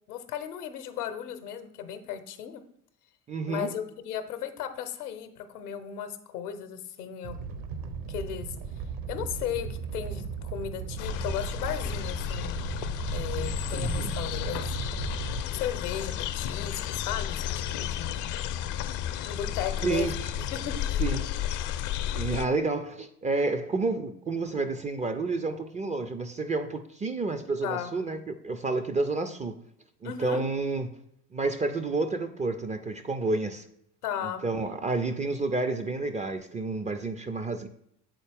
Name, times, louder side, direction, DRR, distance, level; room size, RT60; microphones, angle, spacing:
voice 1, 0.1-2.6 3.5-7.4 8.1-8.5 9.1-12.6 13.1-14.7 15.5-18.2 19.2-20.1 20.5-21.0 27.6-27.9 30.0-30.4 34.0-34.4, left 9 dB, 80° left, 0.7 m, -35 dB
voice 2, 3.3-3.7 13.7-14.2 19.8-20.5 21.0-21.3 22.1-29.6 30.0-30.9 31.3-33.7 34.2-37.7, right 3 dB, 20° right, 0.3 m, -30 dB
Animal, 7.2-15.4, right 6 dB, 50° right, 0.7 m, -36 dB
sound 1, 11.0-22.5, left 10 dB, 45° left, 0.5 m, -32 dB
7.6 x 4.1 x 3.4 m
hypercardioid pair, 60°, 45 cm